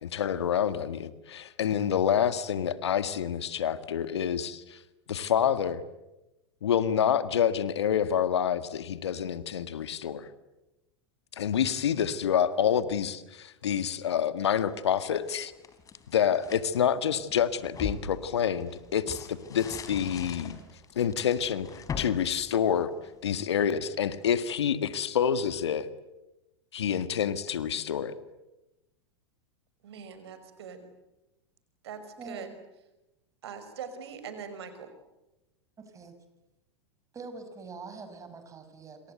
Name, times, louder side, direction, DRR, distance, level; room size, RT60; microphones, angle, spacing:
voice 1, 0.0-4.8 5.1-5.8 6.6-10.3 11.3-15.5 16.1-20.6 21.0-22.9 23.2-25.9 26.7-28.2, left 8 dB, 70° left, 13 dB, 1.8 m, -27 dB
sound 1, 14.7-16.7 17.2-23.3, left 5 dB, 25° left, 4.3 m, -41 dB
voice 2, 29.8-30.9 31.8-32.5 33.4-34.9, right 6 dB, 65° right, 10 dB, 5.6 m, -42 dB
voice 3, 32.2-32.6 35.8-36.1 37.1-39.1, right 4 dB, 20° right, 8 dB, 6.1 m, -44 dB
27.0 x 27.0 x 8.0 m, 0.97 s
figure-of-eight pair, 95°, 14 cm